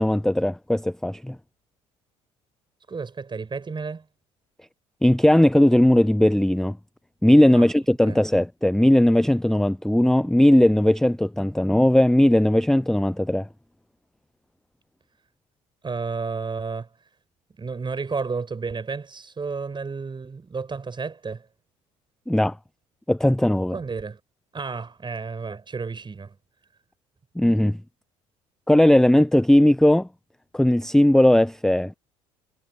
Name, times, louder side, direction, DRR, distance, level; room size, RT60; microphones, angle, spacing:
voice 1, 0.0-1.4 5.0-6.8 7.2-13.5 22.3-22.6 23.1-23.8 27.4-27.8 28.7-30.1 30.5-31.9, left 1 dB, 5° left, 0.7 m, -18 dB
voice 2, 2.9-4.1 7.5-7.7 8.0-8.2 15.8-16.9 17.6-21.5 23.7-24.2 24.5-26.4, right 4 dB, 25° right, 7.2 m, -31 dB
hypercardioid pair, 65°, 17 cm